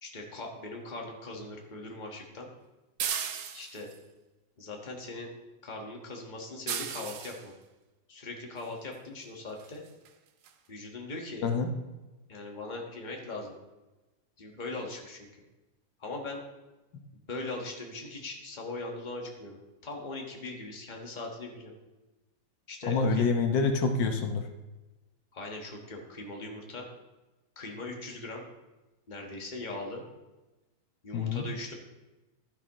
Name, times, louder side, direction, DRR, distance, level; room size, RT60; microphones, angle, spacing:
voice 1, 0.0-2.5 3.5-3.9 4.6-5.3 5.6-7.5 8.1-9.8 10.7-11.4 12.3-13.5 14.4-15.3 16.0-16.4 17.3-19.6 19.8-21.7 22.7-23.3 25.3-26.8 27.5-28.4 29.1-30.0 31.0-31.7, left 2 dB, 25° left, 0 dB, 1.5 m, -40 dB
sound 1, 3.0-4.0 6.7-7.4 8.9-9.0 9.6-9.8 10.1-10.2 10.5-10.6, right 8 dB, 60° right, 0.9 m, -35 dB
voice 2, 22.8-24.5 31.1-31.4, left 4 dB, 85° left, 5 dB, 1.7 m, -27 dB
12.0 x 10.0 x 3.0 m, 1.1 s
omnidirectional pair, 1.9 m